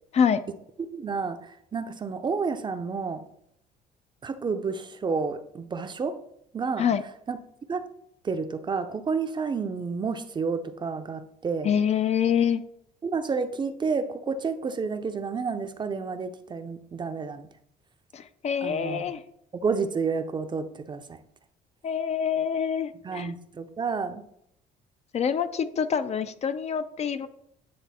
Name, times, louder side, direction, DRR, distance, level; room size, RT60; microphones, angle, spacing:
voice 1, 0.9-3.2 4.2-6.2 6.5-6.9 7.3-7.4 7.7-7.8 8.2-11.7 13.0-17.5 18.6-19.1 19.5-21.2 23.0-24.2, right 5 dB, 25° right, 9 dB, 0.6 m, -30 dB
voice 2, 11.6-12.6 18.1-19.2 21.8-23.3 25.1-27.3, left 7 dB, 40° left, 11 dB, 0.4 m, -26 dB
9.4 x 3.5 x 4.1 m, 0.74 s
cardioid pair, 110°, 17 cm